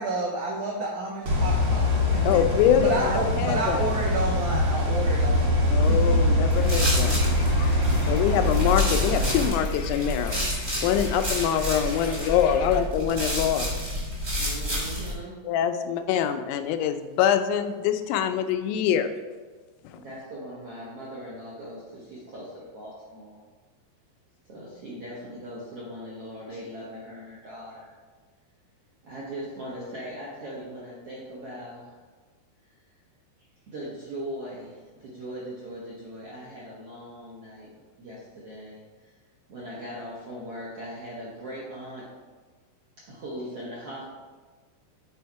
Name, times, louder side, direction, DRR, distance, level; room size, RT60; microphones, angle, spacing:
voice 1, 0.0-1.9 2.3-2.4 2.8-6.2, right 2 dB, 90° right, -3 dB, 1.7 m, -30 dB
sound 1, 1.3-9.5, left 1 dB, 55° right, 1.5 m, -23 dB
voice 2, 1.4-2.3 11.9-12.8 14.4-15.3 19.9-23.4 24.5-27.9 29.0-32.0 33.7-37.7 38.0-39.1 39.5-42.0 43.0-44.0, equal, 70° right, -7 dB, 1.4 m, -40 dB
voice 3, 2.3-3.0 3.4-3.9 5.7-7.2 8.1-10.5 10.8-13.8 15.4-19.1, left 9 dB, 90° left, 8 dB, 2.6 m, -24 dB
sound 2, 6.5-15.1, equal, 30° right, 1.1 m, -30 dB
sound 3, 6.6-12.8, left 4 dB, 70° left, 1.9 m, -43 dB
7.8 x 4.3 x 4.6 m, 1.4 s
omnidirectional pair, 4.6 m